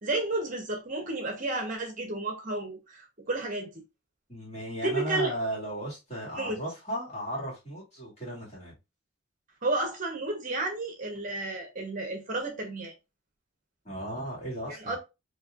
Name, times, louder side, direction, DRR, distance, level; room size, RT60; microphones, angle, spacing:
voice 1, 0.0-3.7 4.8-5.3 6.4-6.6 9.6-12.9 14.7-15.0, right 2 dB, 40° right, 0.8 m, -32 dB
voice 2, 4.3-8.7 13.8-15.0, equal, 35° left, 2.0 m, -35 dB
4.2 x 2.8 x 2.3 m
head